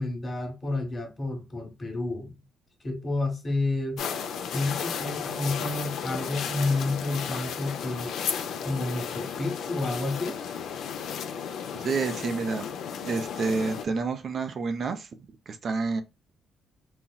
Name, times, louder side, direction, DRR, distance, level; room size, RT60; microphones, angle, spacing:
voice 1, 0.0-2.4 2.8-4.0 4.5-8.2 8.6-10.4, left 2 dB, 30° left, 1.1 m, -30 dB
sound 1, 4.0-13.9, left 7 dB, 75° left, 0.4 m, -34 dB
voice 2, 11.7-12.7 13.0-15.1 15.5-16.0, right 4 dB, 50° right, 0.4 m, -29 dB
4.0 x 2.0 x 2.2 m
cardioid pair, 90°, 0 cm